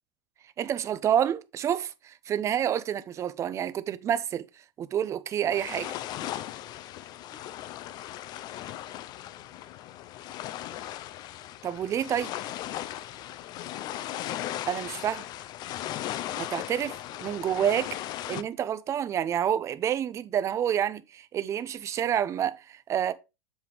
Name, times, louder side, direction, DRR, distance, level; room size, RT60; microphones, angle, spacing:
voice 1, 0.6-4.5 4.8-6.0 11.6-12.3 14.7-15.3 16.4-16.9 17.2-18.0 18.3-23.1, right 9 dB, 25° right, 0.6 m, -28 dB
sound 1, 5.5-18.4, left 13 dB, 35° left, 0.5 m, -37 dB
7.3 x 3.5 x 4.8 m
supercardioid pair, 130°, 12 cm